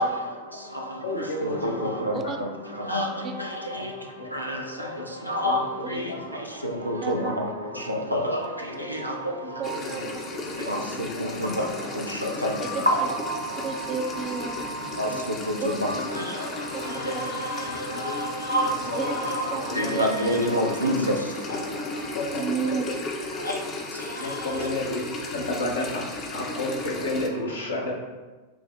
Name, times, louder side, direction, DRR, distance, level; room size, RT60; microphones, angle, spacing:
voice 1, 0.0-2.5 2.8-9.6 10.2-13.7 14.1-14.2 14.5-22.4 23.3-24.7, equal, 90° right, 1 dB, 0.6 m, -29 dB
voice 2, 1.0-2.3 3.8-3.9 4.2-5.1 5.4-5.6 5.9-6.2 7.1-7.2 8.7-8.9 9.4-9.6 10.6-10.7 11.5-11.9 12.8-12.9 14.4-14.6 15.1-15.2 16.1-16.2 16.9-17.2 17.9-18.2 18.8-19.1 19.7-20.0 20.5-20.6 22.1-22.5 22.9-23.0 24.2-25.0 25.3-27.9, left 2 dB, 70° left, 0 dB, 0.8 m, -32 dB
voice 3, 7.0-7.4 9.6-10.0 10.9-11.1 12.6-13.1 13.6-14.6 15.6-15.8 16.7-16.8 17.1-17.3 18.9-19.6 19.9-20.0 22.3-23.0, right 5 dB, 30° right, 6 dB, 0.4 m, -32 dB
sound 1, 9.6-27.3, left 2 dB, 30° left, 0.6 m, -35 dB
6.0 x 2.0 x 3.5 m, 1.2 s
figure-of-eight pair, 90°, 0 cm